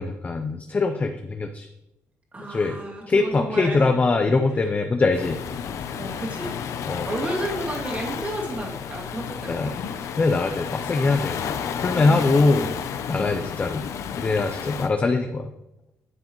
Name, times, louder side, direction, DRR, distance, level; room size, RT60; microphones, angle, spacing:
voice 1, 0.0-1.7 2.5-2.8 3.1-5.4 6.9-7.1 9.5-9.8 10.1-11.4 11.8-12.7 13.1-15.5, left 3 dB, 30° left, 6 dB, 0.6 m, -22 dB
voice 2, 2.3-3.9 5.9-6.6 7.1-9.7 12.0-12.7 13.2-13.4, right 1 dB, 30° right, -3 dB, 2.5 m, -32 dB
Waves surf, 5.1-14.9, left 7 dB, 75° left, 0.7 m, -32 dB
11.0 x 7.6 x 3.1 m, 0.88 s
cardioid pair, 110°, 5 cm